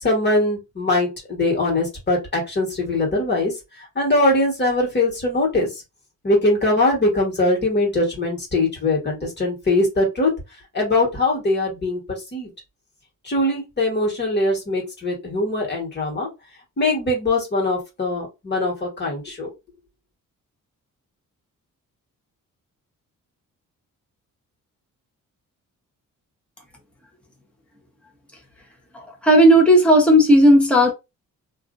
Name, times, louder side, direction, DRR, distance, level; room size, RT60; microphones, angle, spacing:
voice 1, 0.0-5.8 6.2-10.3 10.7-12.0 12.3-12.5 13.2-16.3 16.8-19.5, left 2 dB, 35° left, 1.5 m, -21 dB
voice 2, 28.9-30.9, equal, 5° left, 0.9 m, -13 dB
2.6 x 2.5 x 2.6 m
cardioid pair, 120°, 32 cm